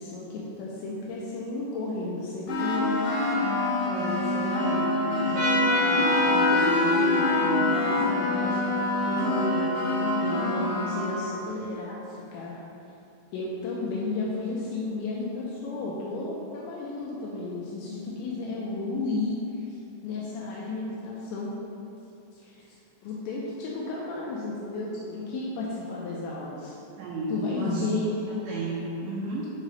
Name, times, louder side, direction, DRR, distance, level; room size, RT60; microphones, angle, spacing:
voice 1, 0.0-2.9 3.9-8.6 9.1-9.8 10.1-12.6 13.3-19.4 19.7-19.8 20.0-21.5 22.3-22.7 23.0-26.7 27.3-28.2, left 2 dB, 85° left, -4 dB, 2.7 m, -33 dB
sound 1, 2.5-11.3, left 2 dB, 65° left, 2.3 m, -26 dB
Trumpet, 5.3-10.4, left 2 dB, 65° right, 1.8 m, -28 dB
voice 2, 18.4-18.8 27.0-29.5, right 2 dB, 80° right, -5 dB, 2.6 m, -33 dB
7.5 x 3.2 x 5.1 m, 2.7 s
omnidirectional pair, 5.8 m